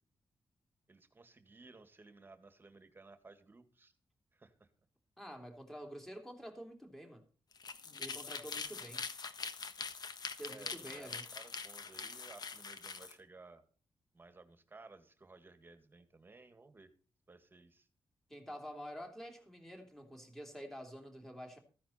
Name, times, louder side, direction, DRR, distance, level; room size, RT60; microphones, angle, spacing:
voice 1, 0.9-3.9 4.3-4.7 10.5-13.6 14.1-16.9 17.3-17.9, right 3 dB, 25° right, 9 dB, 1.9 m, -57 dB
voice 2, 5.2-7.2 8.0-9.1 10.4-11.2 18.3-21.6, equal, 5° left, 4 dB, 3.0 m, -48 dB
sound 1, 7.5-13.1, left 5 dB, 50° left, 1.3 m, -44 dB
15.0 x 10.0 x 4.3 m, 0.39 s
wide cardioid pair, 155°, 9 cm